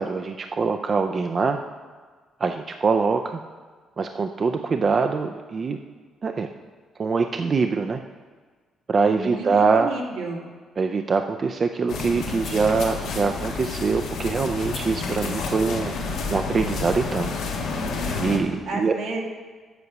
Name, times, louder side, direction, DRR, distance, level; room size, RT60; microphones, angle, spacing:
voice 1, 0.0-1.6 2.4-3.4 4.0-5.8 6.2-6.5 7.0-8.0 8.9-9.9 10.8-15.9 16.3-17.3 18.2-18.9, right 4 dB, 40° right, 6 dB, 0.5 m, -23 dB
voice 2, 9.1-10.5 18.0-19.2, right 3 dB, 80° right, -1 dB, 1.9 m, -32 dB
sound 1, 11.9-18.4, left 4 dB, 90° left, 1.4 m, -30 dB
8.2 x 6.7 x 6.0 m, 1.5 s
cardioid pair, 90°, 0 cm